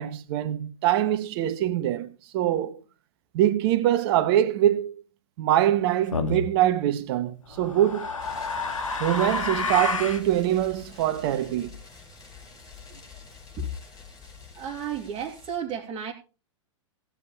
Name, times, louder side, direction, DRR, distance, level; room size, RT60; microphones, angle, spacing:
voice 1, 0.0-2.8 3.3-5.0 5.4-8.1 9.0-11.7, right 12 dB, 50° right, 1.5 m, -24 dB
sound 1, 6.1-6.5 7.5-10.3, left 4 dB, 90° left, 2.1 m, -29 dB
sound 2, 8.2-15.6, left 5 dB, 20° left, 5.2 m, -47 dB
voice 2, 14.5-16.1, right 6 dB, 30° right, 2.3 m, -32 dB
16.0 x 7.7 x 4.3 m
hypercardioid pair, 115°, 16 cm